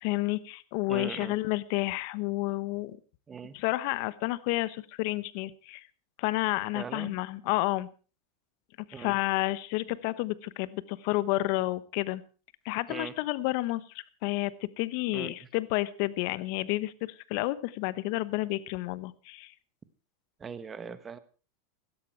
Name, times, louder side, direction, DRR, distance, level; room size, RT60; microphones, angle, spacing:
voice 1, 0.0-3.0 3.5-5.8 6.2-7.9 8.9-12.2 12.6-13.8 14.2-14.5 14.8-19.5, left 19 dB, 60° left, 17 dB, 1.0 m, -30 dB
voice 2, 0.9-1.3 3.3-3.5 6.7-7.1 8.9-9.2 12.9-13.1 15.1-15.3 20.4-21.2, right 6 dB, 20° right, 13 dB, 1.4 m, -40 dB
17.0 x 13.0 x 4.5 m, 0.36 s
hypercardioid pair, 115°, 0 cm